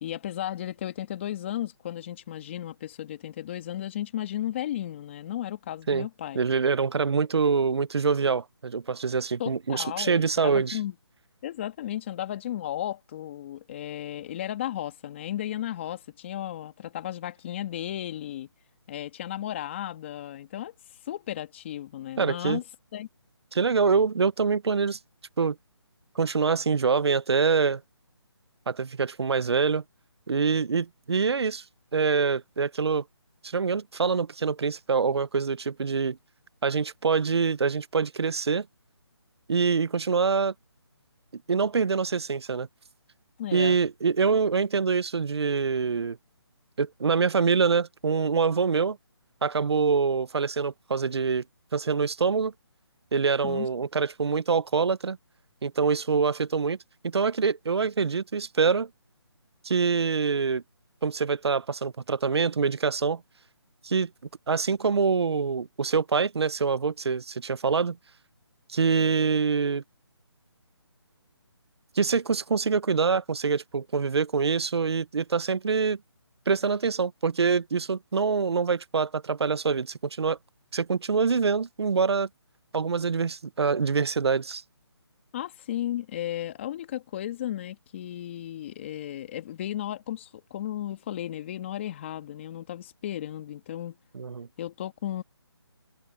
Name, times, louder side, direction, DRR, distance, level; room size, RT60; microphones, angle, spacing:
voice 1, 0.0-6.4 9.4-10.9 11.4-18.5 18.9-20.7 21.1-22.6 22.9-23.1 43.4-43.8 53.4-53.7 85.3-94.0 94.6-95.2, left 12 dB, 25° left, 2.1 m, -34 dB
voice 2, 6.3-10.8 22.2-22.6 23.5-25.0 25.4-25.6 26.1-27.8 28.7-29.8 30.3-31.6 31.9-33.0 33.4-36.2 36.6-38.7 39.5-40.5 41.3-42.7 43.5-46.2 46.8-49.0 49.4-51.4 51.7-52.5 53.1-55.2 55.6-56.8 57.0-58.9 59.6-60.6 61.0-63.2 63.8-64.1 64.5-68.0 68.7-69.8 71.9-76.0 76.5-80.4 80.7-82.3 82.7-84.6 94.1-94.5, right 5 dB, 70° right, 0.9 m, -25 dB
hypercardioid pair, 165°, 14 cm